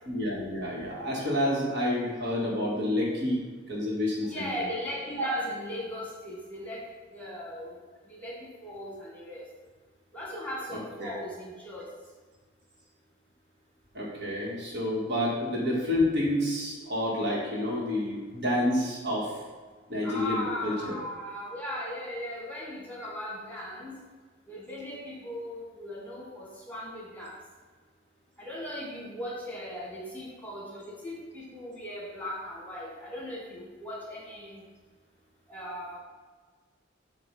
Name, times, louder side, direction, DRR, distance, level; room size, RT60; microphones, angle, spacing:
voice 1, 0.0-4.5 5.2-5.3 11.0-11.1 13.9-19.3 19.9-21.0, left 1 dB, 60° right, -4 dB, 1.6 m, -29 dB
voice 2, 4.2-6.8 7.1-7.8 8.1-9.4 10.1-11.8 20.0-23.9 24.5-27.3 28.4-34.6 35.5-36.0, left 1 dB, 10° left, -5 dB, 1.5 m, -38 dB
7.7 x 2.6 x 5.4 m, 1.5 s
head